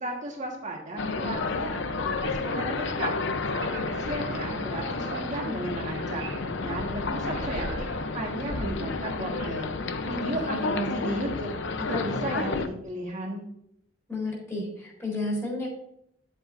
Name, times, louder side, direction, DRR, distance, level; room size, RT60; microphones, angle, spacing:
voice 1, 0.0-3.1 3.5-6.3 6.6-7.9 8.1-9.7 10.0-13.5, right 1 dB, 40° right, -1 dB, 1.5 m, -34 dB
sound 1, 1.0-12.7, left 3 dB, 65° left, 0.7 m, -31 dB
Speech, 3.3-8.4, right 3 dB, 85° right, 3.2 m, -41 dB
voice 2, 10.3-10.9 14.1-15.7, left 2 dB, 15° left, -1 dB, 3.7 m, -32 dB
10.5 x 8.3 x 2.6 m, 0.75 s
head